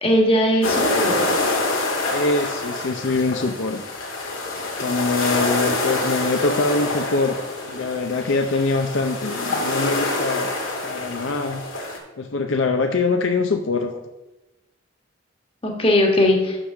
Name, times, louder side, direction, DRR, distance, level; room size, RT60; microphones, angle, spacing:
voice 1, 0.0-1.2 15.6-16.6, left 1 dB, 25° left, 1 dB, 1.4 m, -19 dB
sound 1, 0.6-12.0, left 2 dB, 90° left, 2.0 m, -26 dB
voice 2, 2.1-3.8 4.8-7.4 7.7-10.5 10.8-11.6 12.2-14.0, left 3 dB, 70° left, 5 dB, 0.6 m, -23 dB
6.4 x 6.2 x 6.2 m, 1.0 s
head